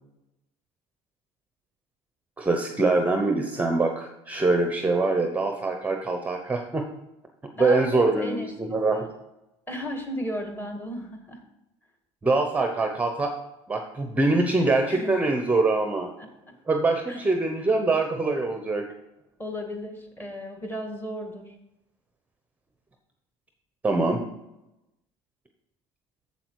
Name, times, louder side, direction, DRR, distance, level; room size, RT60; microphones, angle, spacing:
voice 1, 2.4-6.8 7.6-9.0 12.2-13.3 13.7-16.1 16.7-18.8 23.8-24.2, right 3 dB, 10° right, 4 dB, 0.8 m, -24 dB
voice 2, 7.6-8.5 8.9-9.1 9.7-11.4 14.8-15.3 16.2-16.3 17.1-17.3 19.4-21.5, equal, 15° left, 4 dB, 1.7 m, -35 dB
7.8 x 7.3 x 4.7 m, 0.91 s
cardioid pair, 135°, 13 cm